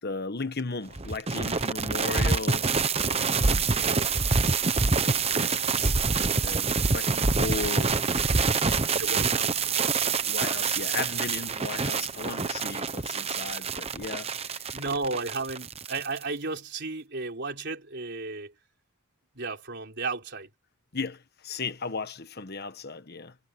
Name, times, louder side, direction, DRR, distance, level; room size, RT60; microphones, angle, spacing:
voice 1, 0.0-2.7 3.0-3.7 5.0-6.0 6.4-8.8 10.3-14.8 20.9-23.4, left 4 dB, 50° left, 1.3 m, -36 dB
sound 1, 0.9-16.2, right 4 dB, 30° right, 1.0 m, -26 dB
voice 2, 3.8-4.3 9.0-9.6 14.7-18.5 19.3-20.5, right 3 dB, 55° right, 3.9 m, -34 dB
head